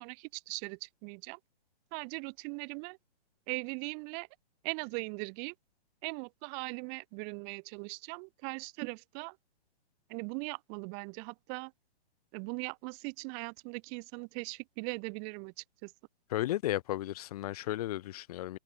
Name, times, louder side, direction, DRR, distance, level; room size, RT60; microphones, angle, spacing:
voice 1, 0.0-1.4 1.9-3.0 3.5-4.3 4.6-5.5 6.0-9.4 10.1-11.7 12.3-15.9, right 40 dB or more, 20° right, 2.3 m, -40 dB
voice 2, 16.3-18.6, left 14 dB, 35° left, 5.7 m, -34 dB
open air
hypercardioid pair, 170°, 33 cm